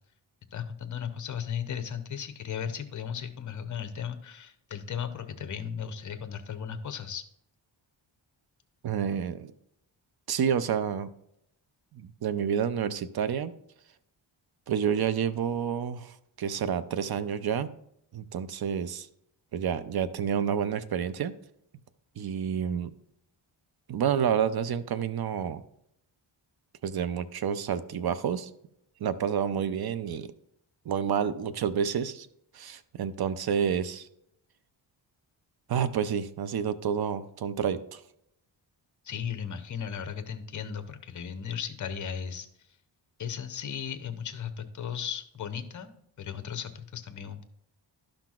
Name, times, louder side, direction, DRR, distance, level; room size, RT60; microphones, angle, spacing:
voice 1, 0.5-7.2 39.0-42.5 43.2-47.4, left 8 dB, 40° left, 9 dB, 0.7 m, -36 dB
voice 2, 8.8-9.5 10.3-11.1 11.9-13.5 14.7-17.7 18.1-19.1 19.5-21.3 22.2-22.9 23.9-25.6 26.8-28.5 29.0-30.3 30.9-32.3 32.5-34.1 35.7-38.0, right 8 dB, 50° right, 13 dB, 0.5 m, -29 dB
11.5 x 5.8 x 2.4 m, 0.75 s
wide cardioid pair, 115°, 48 cm